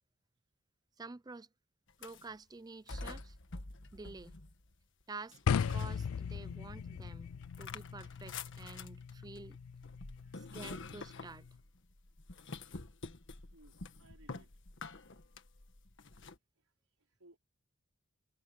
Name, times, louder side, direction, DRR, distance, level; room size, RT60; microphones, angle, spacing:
voice 1, 1.0-1.5 2.0-3.4 3.9-4.4 5.1-7.3 7.6-9.6 10.3-11.5, right 3 dB, 20° right, 0.4 m, -49 dB
sound 1, 1.9-2.4 2.9-4.8 5.3-6.4 6.8-16.4, left 3 dB, 55° left, 1.6 m, -48 dB
sound 2, 5.5-11.6, left 6 dB, 75° left, 0.4 m, -38 dB
voice 2, 13.5-14.5 16.6-17.4, right 2 dB, 85° right, 4.6 m, -64 dB
head